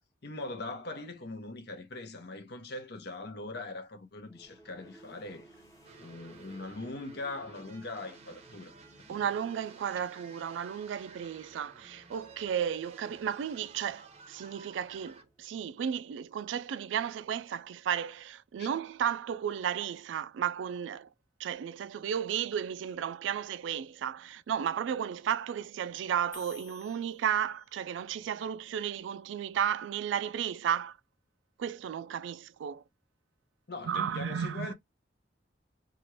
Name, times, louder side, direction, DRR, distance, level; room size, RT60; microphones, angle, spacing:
voice 1, 0.0-5.5 6.0-8.7 9.1-9.3 18.6-18.7 33.7-34.7, left 2 dB, 60° left, 0.7 m, -41 dB
sound 1, 4.2-15.7, right 2 dB, 20° left, 0.9 m, -59 dB
sound 2, 5.8-15.2, right 4 dB, 35° right, 0.6 m, -54 dB
voice 2, 9.1-21.1 21.4-31.0 31.6-32.8 33.8-34.7, right 8 dB, 80° right, 0.3 m, -33 dB
sound 3, 26.3-27.9, left 5 dB, 90° left, 0.9 m, -53 dB
2.9 x 2.4 x 3.0 m
head